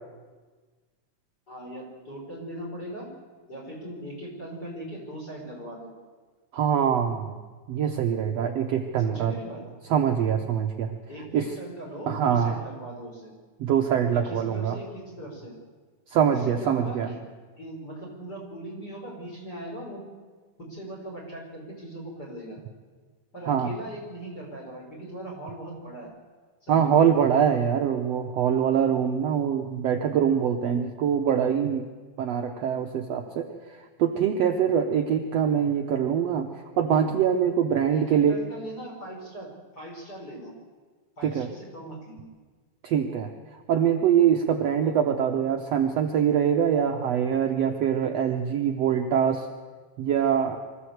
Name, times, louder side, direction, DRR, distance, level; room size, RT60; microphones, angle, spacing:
voice 1, 1.5-3.1 3.5-5.9 9.0-9.6 11.1-13.3 14.1-15.5 16.3-17.2 17.6-20.0 20.6-22.6 23.3-26.1 26.6-27.1 37.9-40.6 41.2-42.3 44.8-45.0, right 1 dB, 30° left, -1 dB, 5.8 m, -39 dB
voice 2, 6.5-7.4 7.7-9.3 9.9-10.9 11.3-11.5 12.1-12.5 13.6-14.8 16.1-17.1 23.5-23.7 26.7-31.8 32.2-33.5 34.0-38.4 41.2-41.5 42.8-43.3 43.7-49.5 50.0-50.6, right 8 dB, 65° right, 4 dB, 1.8 m, -24 dB
24.5 x 15.0 x 8.0 m, 1.4 s
omnidirectional pair, 3.7 m